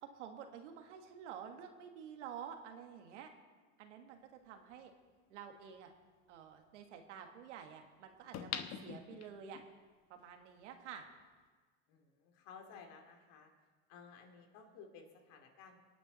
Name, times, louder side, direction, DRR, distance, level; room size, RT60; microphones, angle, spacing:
voice 1, 0.0-3.3 3.8-4.9 5.3-5.9 6.3-9.6 10.1-11.1, right 8 dB, 90° right, 5 dB, 1.7 m, -50 dB
sound 1, 4.7-4.8 8.3-9.7 10.2-10.3, left 9 dB, 50° left, 1.1 m, -43 dB
voice 2, 11.9-13.5 13.9-15.8, left 6 dB, 65° left, 4 dB, 2.7 m, -56 dB
25.0 x 9.4 x 4.1 m, 1.4 s
supercardioid pair, 105°, 35 cm